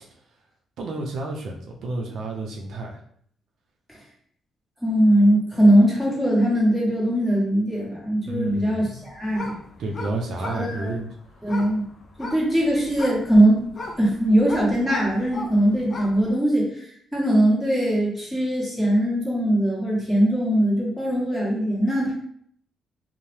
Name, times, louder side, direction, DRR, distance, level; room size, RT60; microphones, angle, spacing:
voice 1, 0.8-3.0 8.2-9.0 9.8-11.1, right 2 dB, 70° right, 1 dB, 0.4 m, -30 dB
voice 2, 4.8-9.6 10.5-10.9 11.4-11.9 12.2-13.7 14.0-16.8 17.1-22.1, right 1 dB, ahead, -6 dB, 1.3 m, -20 dB
sound 1, 9.0-16.3, left 2 dB, 40° left, 0.5 m, -38 dB
2.7 x 2.0 x 3.1 m, 0.64 s
cardioid pair, 90°, 0 cm